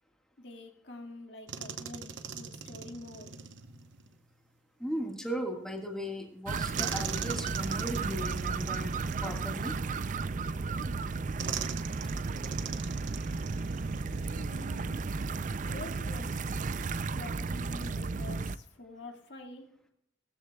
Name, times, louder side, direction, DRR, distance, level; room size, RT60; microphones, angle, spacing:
voice 1, 0.4-3.3 14.4-15.1 15.6-16.3 17.1-19.7, left 2 dB, 65° left, 2 dB, 2.0 m, -46 dB
sound 1, 1.5-4.2 6.8-10.3 11.4-14.8 15.0-15.2 17.6-17.9, right 6 dB, 70° right, 1.0 m, -41 dB
voice 2, 4.8-9.8, equal, 5° left, 1 dB, 1.7 m, -37 dB
sound 2, 6.5-18.6, right 4 dB, 40° right, 0.4 m, -34 dB
17.5 x 14.0 x 2.3 m, 0.72 s
head